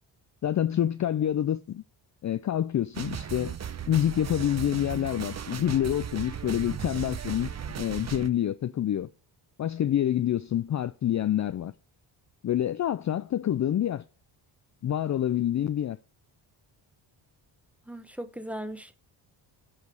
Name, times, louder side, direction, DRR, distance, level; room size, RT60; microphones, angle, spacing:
voice 1, 0.4-1.8 2.2-3.5 3.9-9.1 9.6-11.7 12.4-14.0 14.8-16.0, left 11 dB, 35° left, 0.4 m, -27 dB
sound 1, 2.9-8.3, right 8 dB, 35° right, 0.7 m, -36 dB
voice 2, 17.9-19.0, right 1 dB, 5° right, 1.0 m, -38 dB
8.4 x 5.1 x 7.6 m
cardioid pair, 90°, 50 cm